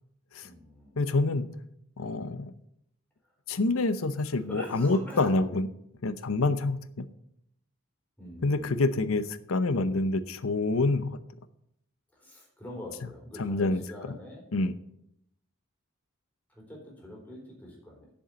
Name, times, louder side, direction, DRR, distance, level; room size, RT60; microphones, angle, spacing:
voice 1, 0.4-1.0 4.3-5.4 8.2-8.9 12.1-14.5 16.5-18.1, left 1 dB, 10° left, -2 dB, 4.0 m, -45 dB
voice 2, 1.0-1.6 2.0-2.5 3.5-5.7 6.0-7.1 8.4-11.2 13.4-13.8 14.5-14.7, left 2 dB, 90° left, 13 dB, 0.8 m, -27 dB
7.7 x 7.2 x 8.0 m, 0.76 s
head